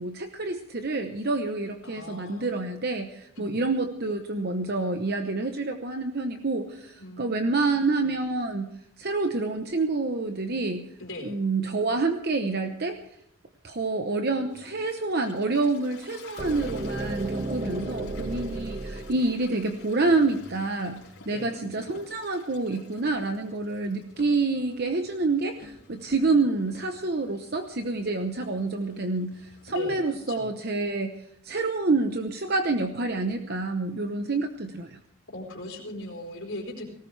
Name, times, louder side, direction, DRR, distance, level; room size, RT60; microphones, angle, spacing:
voice 1, 0.0-8.7 9.0-10.9 11.2-13.0 13.6-31.1 31.4-35.0, right 3 dB, 50° right, 6 dB, 0.9 m, -28 dB
voice 2, 1.8-2.5 3.4-3.6 7.0-7.6 11.0-11.4 17.6-18.2 21.3-21.5 26.0-26.2 29.7-30.5 35.3-36.9, left 1 dB, 70° left, -1 dB, 4.0 m, -39 dB
Toilet flush, 14.5-30.1, left 4 dB, 90° left, 4.3 m, -51 dB
sound 1, 16.4-20.3, right 2 dB, 30° right, 1.1 m, -34 dB
sound 2, 20.9-21.1 21.9-22.2 23.0-23.3 24.1-24.4 25.6-25.9 26.7-27.0 27.8-28.0, left 1 dB, 50° left, 3.7 m, -51 dB
19.0 x 18.5 x 3.4 m, 0.69 s
head